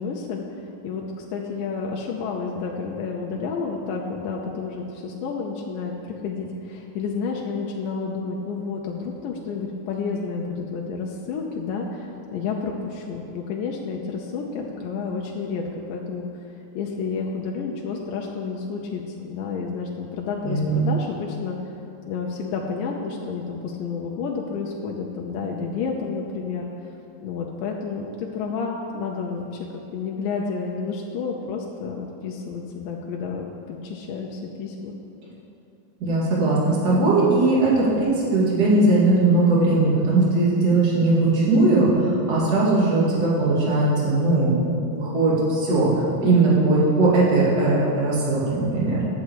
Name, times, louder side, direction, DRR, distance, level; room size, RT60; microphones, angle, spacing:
voice 1, 0.0-16.4 16.7-21.6 22.1-26.7 27.2-34.9, left 5 dB, 80° left, -1 dB, 2.2 m, -30 dB
voice 2, 20.4-20.8 36.0-44.6 44.9-49.0, right 2 dB, 30° right, -7 dB, 2.3 m, -19 dB
9.3 x 5.6 x 8.1 m, 2.8 s
omnidirectional pair, 4.0 m